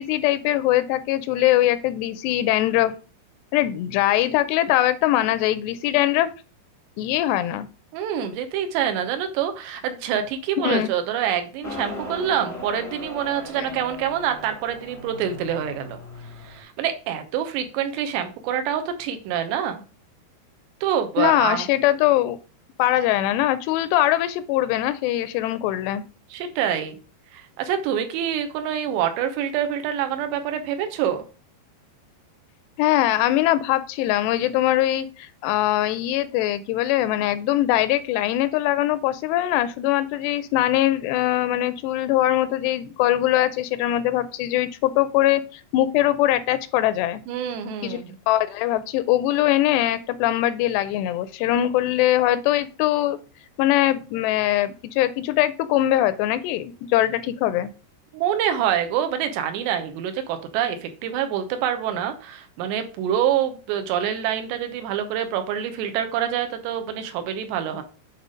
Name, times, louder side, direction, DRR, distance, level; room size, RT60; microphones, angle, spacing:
voice 1, 0.0-3.0 3.5-6.3 7.0-7.7 10.6-10.9 13.6-13.7 21.2-22.4 22.8-26.0 32.8-47.2 47.8-53.2 53.6-57.7, left 14 dB, 85° left, 14 dB, 2.6 m, -22 dB
voice 2, 7.9-16.0 16.2-19.8 20.8-21.7 26.3-27.0 27.3-31.2 47.3-48.2 58.1-67.8, right 9 dB, 80° right, 7 dB, 3.0 m, -26 dB
Motorcycle, 11.6-16.6, left 1 dB, 10° left, 0.7 m, -38 dB
8.1 x 4.0 x 5.0 m, 0.36 s
omnidirectional pair, 4.9 m